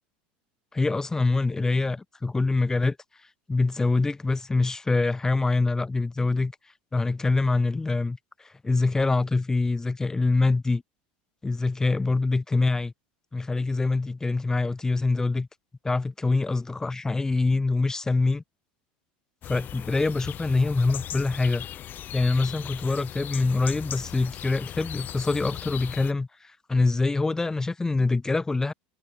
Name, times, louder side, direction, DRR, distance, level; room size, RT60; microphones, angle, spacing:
voice 1, 0.7-3.0 3.5-6.5 6.9-10.8 11.4-12.9 13.3-15.5 15.8-18.4 19.5-21.7 22.1-26.3 26.7-28.7, left 3 dB, 10° left, 0.8 m, -25 dB
sound 1, 19.4-26.1, left 11 dB, 40° left, 2.2 m, -38 dB
supercardioid pair, 125°, 5 cm